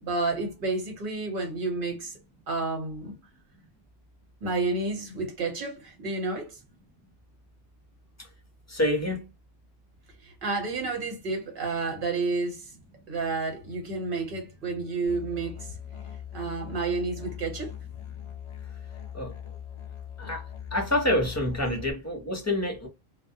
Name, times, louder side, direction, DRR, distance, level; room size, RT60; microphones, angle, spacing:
voice 1, 0.0-2.2 2.5-3.2 4.4-6.6 10.2-12.7 13.1-15.8 16.3-17.7, right 3 dB, 55° right, 1.2 m, -30 dB
voice 2, 8.7-9.3 19.1-19.5 20.2-22.9, left 1 dB, 20° left, 0.6 m, -28 dB
Musical instrument, 15.1-21.9, left 9 dB, 50° left, 0.3 m, -41 dB
2.2 x 2.1 x 2.7 m
omnidirectional pair, 1.1 m